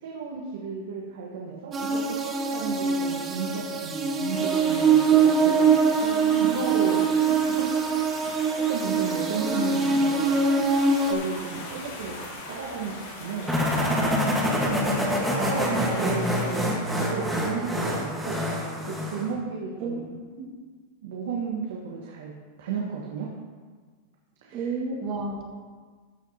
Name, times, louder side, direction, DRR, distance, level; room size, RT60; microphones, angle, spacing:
voice 1, 0.0-5.7 6.3-7.6 8.7-10.4 11.1-12.9 13.2-13.9 14.7-14.9 15.4-18.4 18.8-20.1 21.0-22.3 22.6-23.3 24.4-24.7, right 5 dB, 85° right, -3 dB, 1.4 m, -33 dB
sound 1, 1.7-11.1, right 5 dB, 25° right, 0.8 m, -23 dB
sound 2, 4.3-16.7, left 2 dB, 75° left, 2.9 m, -40 dB
voice 2, 6.0-6.9 19.8-20.0 20.4-20.5 24.5-25.4, right 3 dB, 40° right, -1 dB, 1.9 m, -32 dB
sound 3, 13.5-19.3, equal, 5° right, 1.5 m, -26 dB
13.5 x 6.6 x 2.9 m, 1.5 s
supercardioid pair, 140°, 0 cm